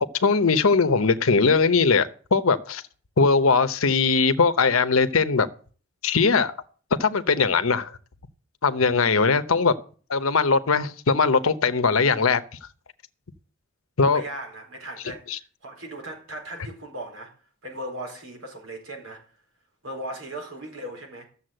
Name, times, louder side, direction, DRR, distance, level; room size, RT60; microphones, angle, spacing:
voice 1, 0.2-2.8 3.2-5.5 6.0-6.5 7.0-7.9 8.6-9.7 10.1-12.4 14.0-14.2 15.3-15.4, left 4 dB, 75° left, 0.9 m, -20 dB
voice 2, 14.0-15.2 15.6-17.3 17.6-19.2 19.8-21.2, right 1 dB, 75° right, 4.3 m, -37 dB
13.0 x 7.2 x 7.8 m
head